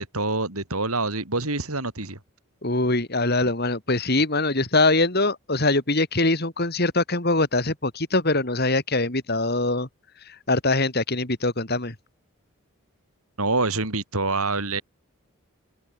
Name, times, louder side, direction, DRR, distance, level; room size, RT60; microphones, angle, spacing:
voice 1, 0.0-2.2 13.4-14.8, right 3 dB, 80° right, 5.8 m, -26 dB
voice 2, 2.6-9.9 10.2-11.9, left 2 dB, 45° left, 3.3 m, -23 dB
head